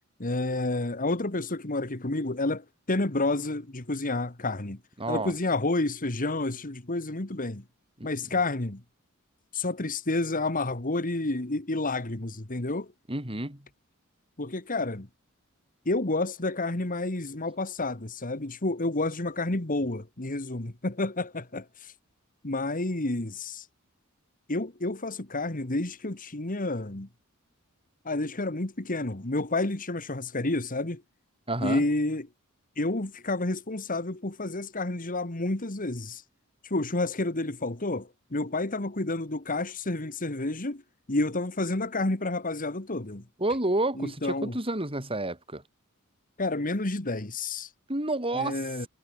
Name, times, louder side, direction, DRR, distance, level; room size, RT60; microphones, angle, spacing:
voice 1, 0.2-4.8 5.1-7.6 8.0-8.8 9.5-12.9 14.4-15.1 15.9-21.9 22.4-23.7 24.5-27.1 28.1-31.0 31.6-32.3 32.8-36.2 36.6-40.8 41.1-43.2 44.0-44.6 46.4-47.7 48.3-48.9, left 2 dB, 40° left, 1.9 m, -30 dB
voice 2, 5.0-5.3 13.1-13.6 31.5-31.8 43.4-45.6 47.9-48.6, right 2 dB, 25° right, 5.5 m, -29 dB
head